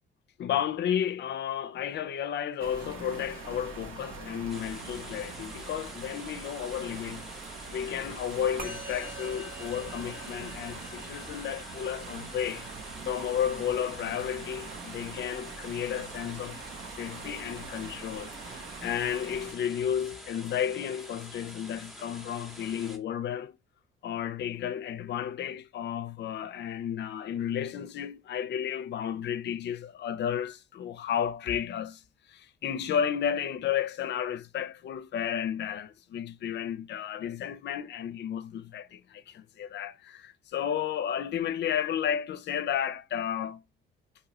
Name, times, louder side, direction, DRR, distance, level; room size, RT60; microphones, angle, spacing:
voice 1, 0.4-7.2 7.7-12.7 13.0-16.6 17.0-23.6 24.0-32.0 32.3-43.6, left 9 dB, 60° left, 0.5 m, -32 dB
sound 1, 2.6-19.5, right 5 dB, 85° right, 0.9 m, -43 dB
sound 2, 4.5-23.0, equal, ahead, 0.7 m, -47 dB
Musical instrument, 8.6-18.1, right 1 dB, 40° right, 1.1 m, -48 dB
2.8 x 2.6 x 2.9 m
cardioid pair, 90°, 20 cm